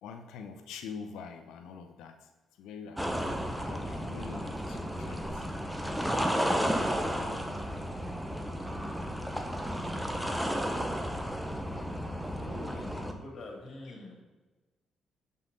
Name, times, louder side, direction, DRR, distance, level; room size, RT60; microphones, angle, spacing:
voice 1, 0.0-2.3 2.6-3.3 3.6-5.5, left 6 dB, 90° left, 6 dB, 0.6 m, -45 dB
sound 1, 3.0-13.1, equal, 5° right, 0.8 m, -33 dB
voice 2, 12.4-14.2, left 1 dB, 55° left, 0 dB, 2.4 m, -45 dB
7.5 x 5.5 x 4.0 m, 1.2 s
cardioid pair, 90°, 0 cm